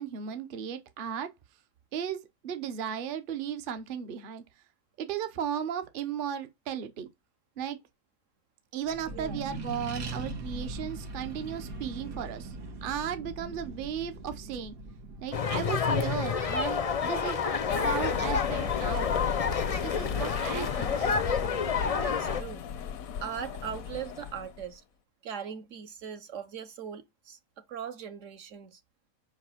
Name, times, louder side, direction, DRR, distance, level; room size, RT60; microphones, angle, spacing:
voice 1, 0.0-1.3 1.9-4.6 5.0-7.1 7.6-7.8 8.7-14.7 15.2-19.1 19.8-21.2, right 8 dB, 45° right, 0.8 m, -36 dB
Accelerating revving vroom, 8.8-19.8, right 2 dB, 90° right, 1.8 m, -42 dB
sound 1, 15.3-22.4, left 6 dB, 60° left, 0.3 m, -29 dB
sound 2, 17.7-24.6, left 8 dB, 90° left, 1.1 m, -35 dB
voice 2, 20.0-20.3 21.6-22.6 23.2-24.8 25.2-28.8, right 8 dB, 65° right, 1.1 m, -40 dB
5.2 x 4.9 x 5.5 m
omnidirectional pair, 1.5 m